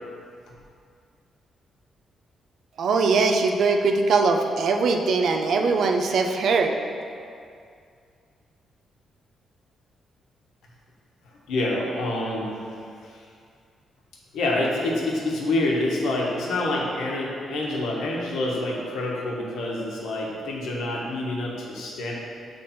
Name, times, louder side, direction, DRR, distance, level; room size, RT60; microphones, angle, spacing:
voice 1, 2.8-6.7, right 4 dB, 55° right, 4 dB, 0.4 m, -21 dB
voice 2, 11.5-12.5 13.1-13.2 14.3-22.1, left 2 dB, 80° left, -3 dB, 1.1 m, -27 dB
6.9 x 3.3 x 4.3 m, 2.3 s
cardioid pair, 175°, 0 cm